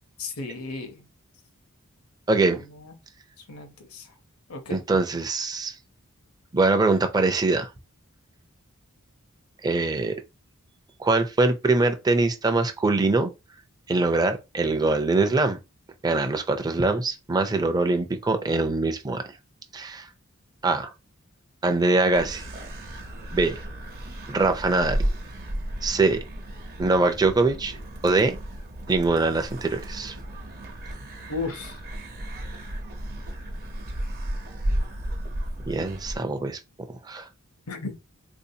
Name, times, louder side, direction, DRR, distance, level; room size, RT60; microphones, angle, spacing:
voice 1, 0.2-1.1 2.5-3.0 3.4-4.1 4.5-4.8 31.3-31.8 37.7-38.0, left 3 dB, 85° left, 0.9 m, -35 dB
voice 2, 2.3-2.6 4.7-5.8 6.5-7.7 9.6-10.2 11.0-13.3 13.9-15.6 16.0-19.2 19.7-20.1 20.6-20.9 21.6-22.5 23.3-23.6 24.3-25.0 25.8-26.2 26.8-27.8 28.0-28.4 28.9-30.2 35.7-36.6 37.0-37.3, right 3 dB, 20° right, 0.4 m, -23 dB
sound 1, 22.1-36.2, right 1 dB, 45° right, 0.7 m, -34 dB
3.7 x 2.6 x 2.8 m
head